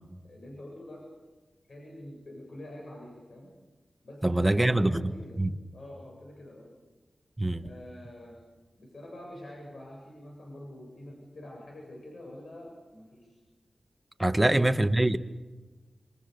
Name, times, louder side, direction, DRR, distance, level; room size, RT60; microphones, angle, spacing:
voice 1, 0.2-1.1 1.7-3.5 4.0-5.4 5.7-6.7 7.6-8.4 8.8-13.4, left 1 dB, 70° left, 7.9 m, -46 dB
voice 2, 4.2-5.5 7.4-7.6 14.2-15.2, right 1 dB, 15° right, 1.6 m, -24 dB
27.5 x 27.0 x 7.0 m
wide cardioid pair, 80°, 0 cm